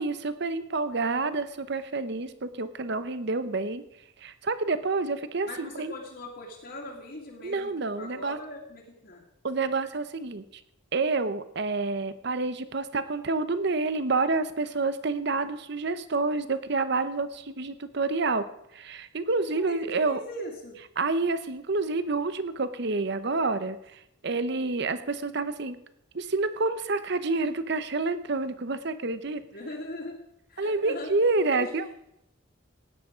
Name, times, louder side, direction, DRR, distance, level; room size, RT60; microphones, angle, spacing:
voice 1, 0.0-3.8 4.2-5.9 7.4-8.4 9.4-10.6 10.9-18.4 18.7-20.2 21.0-25.8 26.1-29.4 30.6-32.0, right 3 dB, 55° right, 12 dB, 0.8 m, -28 dB
voice 2, 5.5-9.2 19.5-19.8 20.1-20.8 29.5-31.1 31.5-31.7, left 1 dB, 55° left, -5 dB, 2.3 m, -40 dB
16.5 x 9.8 x 5.1 m, 0.82 s
head